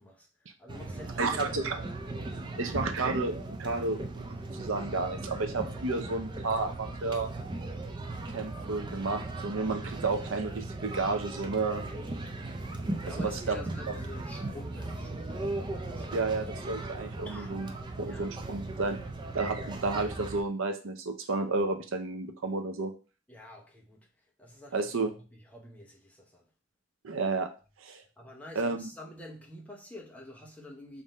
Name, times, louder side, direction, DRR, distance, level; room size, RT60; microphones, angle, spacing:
voice 1, 0.0-1.6 2.5-2.7 3.6-3.8 6.0-6.1 11.9-12.1 13.0-16.3 17.2-17.6 18.0-18.3 23.3-26.5 28.2-31.0, left 1 dB, 5° left, 0.7 m, -48 dB
sound 1, 0.7-20.4, right 2 dB, 20° right, 0.3 m, -38 dB
voice 2, 1.2-1.8 2.6-3.3 3.6-4.3 4.5-7.3 8.3-11.9 13.1-13.5 16.1-17.7 18.0-19.0 19.3-22.9 24.7-25.1 27.0-27.5 27.8-28.0 28.6-28.9, right 3 dB, 70° right, 0.6 m, -31 dB
3.6 x 2.6 x 4.1 m
head